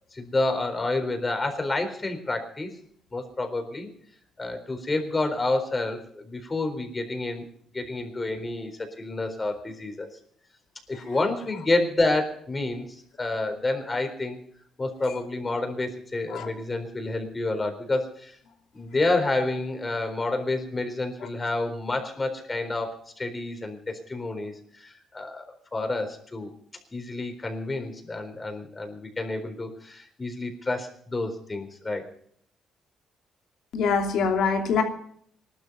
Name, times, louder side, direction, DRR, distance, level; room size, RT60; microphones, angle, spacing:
voice 1, 0.1-2.7 3.1-3.9 4.4-7.4 7.7-10.1 10.9-12.9 13.2-14.4 14.8-18.4 18.7-25.4 25.7-26.5 26.9-32.0, left 2 dB, 25° left, 6 dB, 4.1 m, -29 dB
voice 2, 33.7-34.8, left 5 dB, 75° left, 4 dB, 2.9 m, -24 dB
19.0 x 12.5 x 5.4 m, 0.64 s
cardioid pair, 90°, 0 cm